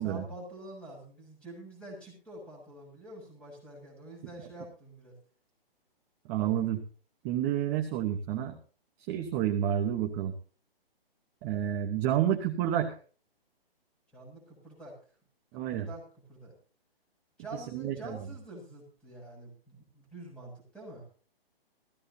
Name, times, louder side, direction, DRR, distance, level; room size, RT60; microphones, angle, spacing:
voice 1, 0.0-5.1 14.1-14.9 15.5-16.0 16.3-16.5 17.4-21.1, right 1 dB, 5° left, -2 dB, 7.0 m, -46 dB
voice 2, 6.3-6.8 7.2-8.6 9.1-10.3 11.4-12.9 15.5-15.9 17.5-18.2, right 10 dB, 15° right, 3 dB, 1.0 m, -29 dB
19.0 x 15.5 x 2.8 m, 0.38 s
hypercardioid pair, 160°, 30 cm